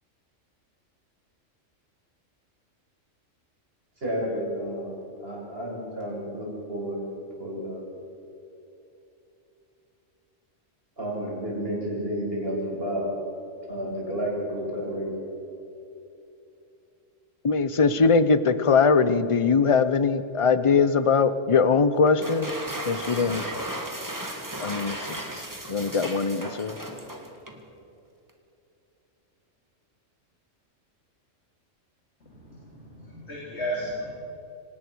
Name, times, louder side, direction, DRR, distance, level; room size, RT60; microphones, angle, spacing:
voice 1, 4.0-4.9 5.2-7.0 7.4-7.8 11.0-13.1 13.7-15.1, equal, 45° right, -4 dB, 7.7 m, -31 dB
voice 2, 17.4-22.5 22.9-23.5 24.6-26.7, left 5 dB, 30° left, 13 dB, 0.8 m, -22 dB
sound 1, 22.0-27.6, right 1 dB, 15° right, 2.2 m, -35 dB
voice 3, 32.2-34.2, equal, 55° left, -4 dB, 4.1 m, -34 dB
26.0 x 19.0 x 6.4 m, 2.8 s
omnidirectional pair, 1.3 m